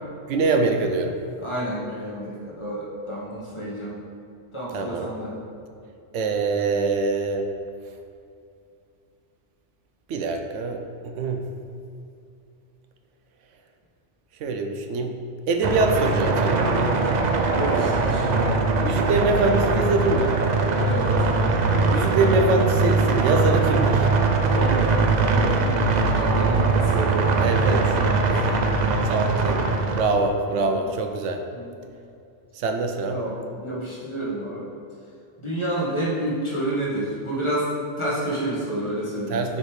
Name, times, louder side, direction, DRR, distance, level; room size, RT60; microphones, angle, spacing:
voice 1, 0.3-1.2 4.7-5.1 6.1-7.5 10.1-11.4 14.4-15.2 15.5-16.7 18.8-20.4 21.9-24.1 27.4-27.8 29.0-29.6 30.0-31.4 32.6-33.2 39.3-39.6, right 3 dB, 85° right, 5 dB, 0.9 m, -24 dB
voice 2, 1.4-3.9 4.5-5.4 17.5-18.3 20.8-21.3 24.5-25.8 26.1-29.1 30.5-30.8 31.5-31.7 33.1-34.7 35.4-37.7 38.0-39.6, right 1 dB, 25° left, -7 dB, 1.3 m, -30 dB
sound 1, 15.6-30.0, right 3 dB, 55° right, 0.5 m, -21 dB
6.6 x 3.5 x 4.7 m, 2.5 s
omnidirectional pair, 1.2 m